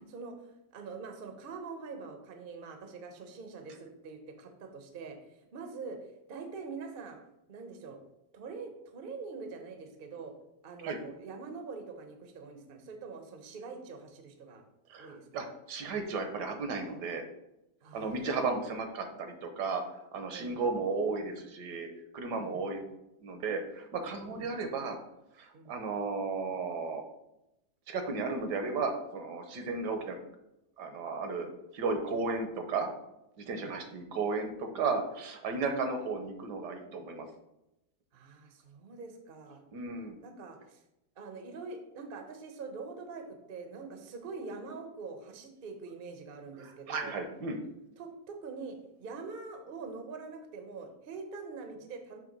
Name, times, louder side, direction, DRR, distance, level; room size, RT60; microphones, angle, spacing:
voice 1, 0.1-5.2 5.5-6.0 6.3-7.2 7.5-8.0 8.3-10.3 10.6-14.6 15.0-15.2 17.8-18.3 20.3-20.7 22.3-22.7 24.3-24.5 25.5-25.8 33.5-33.7 35.6-35.8 38.1-39.6 40.2-40.8 41.2-47.1 48.0-52.2, right 4 dB, 45° right, 5 dB, 0.7 m, -44 dB
voice 2, 14.9-17.2 17.9-19.8 20.1-21.9 22.1-22.8 23.2-25.0 25.4-27.0 27.9-30.2 30.8-31.5 31.7-32.9 33.4-37.3 39.7-40.1 46.6-47.6, right 4 dB, 70° right, 5 dB, 1.4 m, -34 dB
6.8 x 3.3 x 5.2 m, 0.88 s
omnidirectional pair, 1.9 m